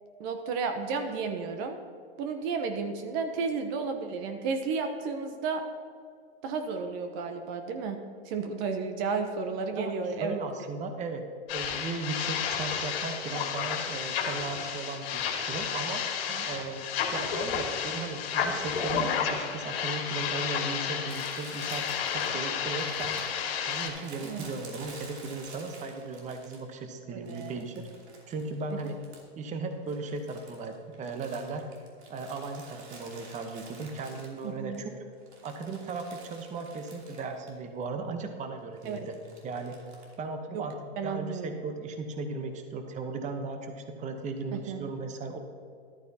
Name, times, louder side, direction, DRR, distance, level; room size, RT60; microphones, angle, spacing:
voice 1, 0.2-1.8 2.2-5.6 6.4-8.0 8.2-10.4 16.3-16.4 24.2-24.5 27.1-27.6 34.4-34.8 38.8-39.0 40.5-40.6 41.0-41.6 44.5-44.9, right 5 dB, 45° right, 6 dB, 1.0 m, -32 dB
voice 2, 10.2-11.2 11.5-16.0 16.5-23.2 23.6-27.9 28.3-29.0 29.4-31.7 32.1-35.1 35.4-39.2 39.4-39.8 40.2-40.7 41.0-45.4, right 3 dB, 20° right, 6 dB, 1.0 m, -37 dB
sound 1, 11.5-23.9, left 7 dB, 65° left, 2.3 m, -31 dB
Crumpling crinkling, 21.1-26.8 27.3-29.4 29.7-34.8 35.1-37.6 37.8-37.9 38.8-40.1, right 3 dB, 80° right, 3.1 m, -50 dB
13.5 x 11.5 x 2.9 m, 2.3 s
hypercardioid pair, 125°, 32 cm